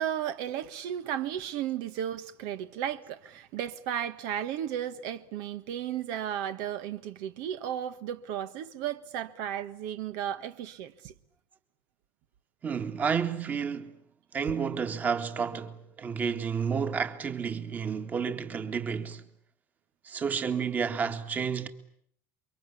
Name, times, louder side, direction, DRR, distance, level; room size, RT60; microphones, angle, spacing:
voice 1, 0.0-11.1, right 10 dB, 70° right, 1.4 m, -34 dB
voice 2, 12.6-13.9 14.3-19.2 20.0-21.7, right 6 dB, 25° right, 2.0 m, -31 dB
29.0 x 24.0 x 8.5 m
cardioid pair, 145°, 6 cm